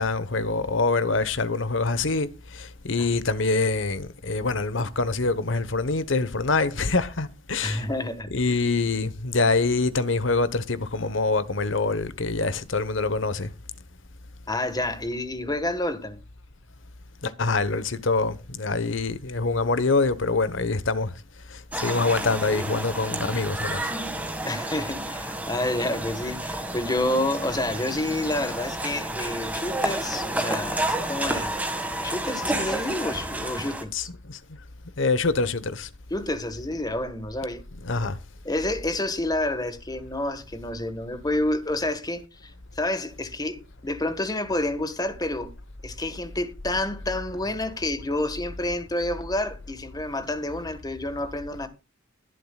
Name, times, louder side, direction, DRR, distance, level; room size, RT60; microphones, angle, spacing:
voice 1, 0.0-7.9 8.3-13.5 17.2-21.1 21.5-23.9 33.9-34.4 35.0-35.9 37.8-38.2, left 3 dB, 70° left, 1.2 m, -25 dB
voice 2, 7.6-8.3 14.5-16.2 24.4-34.1 36.1-37.6 38.4-45.5 45.8-51.7, left 1 dB, 20° left, 1.5 m, -29 dB
sound 1, 21.7-33.8, right 1 dB, 10° right, 1.8 m, -30 dB
21.5 x 7.8 x 2.4 m
head